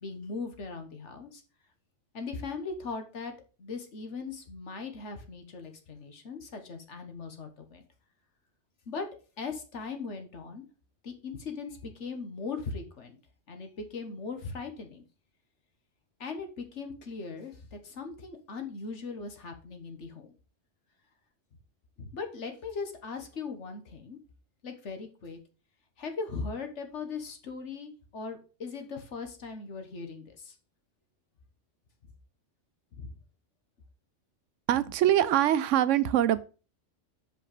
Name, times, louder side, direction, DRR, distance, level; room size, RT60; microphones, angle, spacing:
voice 1, 0.0-1.4 2.1-3.3 3.6-7.8 8.9-9.0 9.4-10.6 11.0-13.2 13.5-15.0 16.2-20.3 22.0-24.2 24.6-25.4 26.0-30.5 32.9-33.1, left 4 dB, 75° left, 1.6 m, -39 dB
voice 2, 34.7-36.4, right 11 dB, 85° right, 0.9 m, -23 dB
6.5 x 5.3 x 4.9 m
omnidirectional pair, 1.2 m